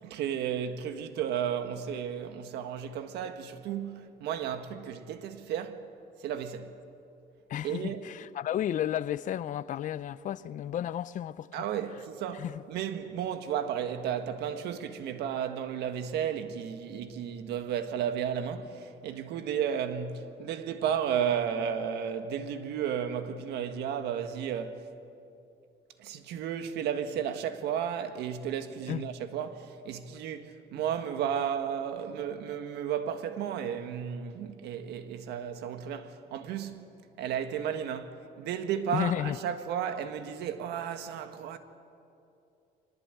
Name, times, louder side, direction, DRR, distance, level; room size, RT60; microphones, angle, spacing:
voice 1, 0.0-5.9 6.2-6.8 7.6-8.0 11.5-24.8 26.0-41.6, right 8 dB, 80° right, 1.6 m, -33 dB
voice 2, 7.5-11.5 12.3-12.6 28.9-29.0 38.9-39.4, left 10 dB, 50° left, 0.6 m, -32 dB
23.5 x 20.0 x 9.0 m
cardioid pair, 110°, 17 cm